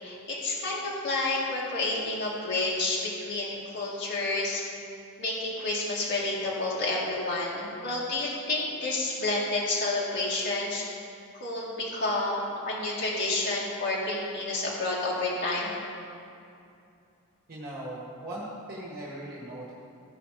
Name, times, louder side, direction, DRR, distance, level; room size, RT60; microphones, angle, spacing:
voice 1, 0.0-4.6 5.2-10.9 11.4-15.7, left 2 dB, 50° left, -5 dB, 2.0 m, -30 dB
voice 2, 17.5-19.7, right 1 dB, 45° right, -5 dB, 1.4 m, -39 dB
15.0 x 5.1 x 4.9 m, 2.6 s
head